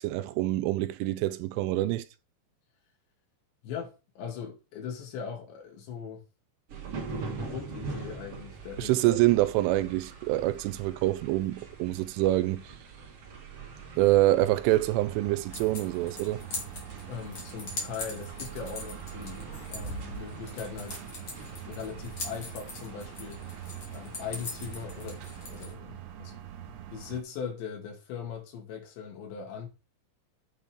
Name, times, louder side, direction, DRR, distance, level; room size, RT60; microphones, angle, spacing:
voice 1, 0.0-2.0 8.8-12.7 14.0-16.4, right 16 dB, 90° right, 3.2 m, -26 dB
voice 2, 3.6-6.2 6.9-9.2 17.1-21.0 21.4-23.6 23.9-25.2 25.5-26.4 26.7-29.7, left 7 dB, 70° left, 4.6 m, -40 dB
sound 1, 6.7-25.7, right 4 dB, 55° right, 1.7 m, -44 dB
sound 2, 15.0-27.2, right 11 dB, 75° right, 3.2 m, -44 dB
sound 3, 15.5-25.7, left 2 dB, 35° left, 3.0 m, -42 dB
9.3 x 6.8 x 3.7 m
omnidirectional pair, 5.5 m